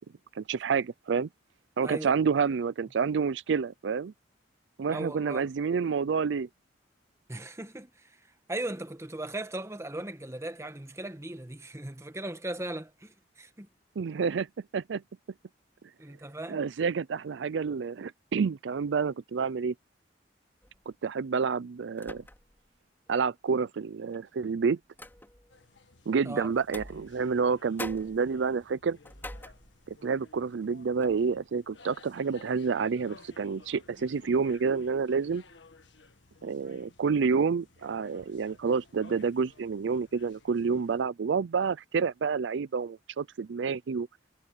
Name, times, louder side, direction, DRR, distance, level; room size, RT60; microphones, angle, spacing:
voice 1, 0.4-1.3 1.8-4.1 4.8-6.5 14.0-14.5 14.7-15.0 16.5-19.7 21.0-22.2 23.1-24.8 26.1-29.0 29.9-35.4 36.4-44.1, right 5 dB, 75° right, 0.4 m, -29 dB
voice 2, 1.8-2.1 4.9-5.5 7.3-8.2 8.5-13.7 16.0-16.6 26.2-26.5, right 1 dB, 15° right, 1.3 m, -38 dB
sound 1, 20.6-20.9 22.0-22.7 23.1-23.2 24.1-25.6 26.6-27.5 27.8-30.1 30.5-30.7 31.0-31.3, left 1 dB, 10° left, 5.0 m, -46 dB
sound 2, 25.5-41.0, left 3 dB, 80° left, 1.7 m, -57 dB
head